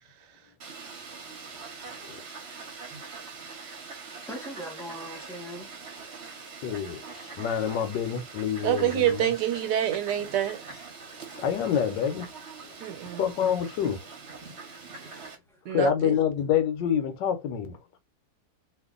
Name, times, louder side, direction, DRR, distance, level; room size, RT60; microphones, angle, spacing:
Fowl, 0.6-15.4, right 4 dB, 45° right, 1.0 m, -43 dB
voice 1, 4.3-5.7 6.2-6.3 15.0-15.6, equal, 5° left, 0.5 m, -41 dB
voice 2, 6.6-9.3 11.4-12.3 12.6-12.7 13.2-14.1 15.7-17.8, left 9 dB, 85° left, 1.3 m, -27 dB
voice 3, 8.6-10.6 12.8-13.2 15.7-16.2, right 11 dB, 75° right, 1.3 m, -26 dB
2.9 x 2.5 x 3.7 m
omnidirectional pair, 1.9 m